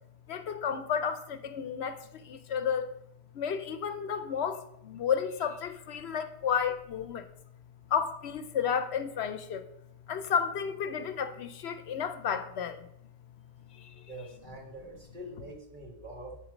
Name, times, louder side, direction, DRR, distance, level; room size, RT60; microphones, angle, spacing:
voice 1, 0.3-2.9 3.3-7.2 7.9-9.7 10.1-12.9 13.7-13.9, left 7 dB, 70° left, 0.9 m, -32 dB
voice 2, 14.1-16.4, right 1 dB, 45° right, 2.1 m, -44 dB
10.0 x 4.3 x 5.1 m
omnidirectional pair, 1.2 m